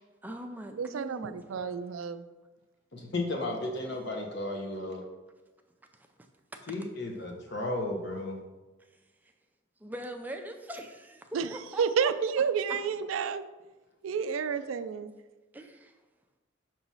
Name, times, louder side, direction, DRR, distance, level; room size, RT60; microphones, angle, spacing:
voice 1, 0.2-1.8 9.8-11.2 11.5-12.1 15.5-15.9, right 1 dB, 10° right, 4 dB, 0.4 m, -42 dB
voice 2, 0.8-2.2 11.3-11.5 11.8-13.4 14.0-15.1, right 6 dB, 80° right, 12 dB, 0.4 m, -30 dB
voice 3, 2.9-5.0 6.7-8.4, left 2 dB, 55° left, 1 dB, 1.0 m, -34 dB
6.1 x 2.9 x 5.5 m, 1.1 s
head